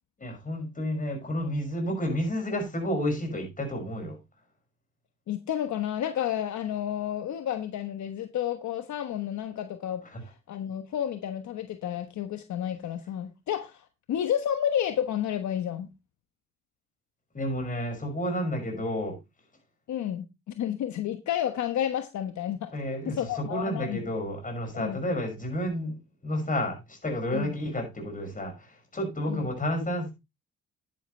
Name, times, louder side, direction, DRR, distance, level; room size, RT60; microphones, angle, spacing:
voice 1, 0.2-4.2 10.1-10.2 17.3-19.2 22.7-26.0 26.2-30.1, equal, 25° left, 6.0 m, -31 dB
voice 2, 5.3-10.0 10.5-15.9 19.9-20.2 20.6-22.8 23.0-24.0 24.7-25.0 27.3-27.6 29.3-29.5, left 10 dB, 70° left, 1.2 m, -31 dB
10.5 x 10.0 x 3.2 m
cardioid pair, 90°, 30 cm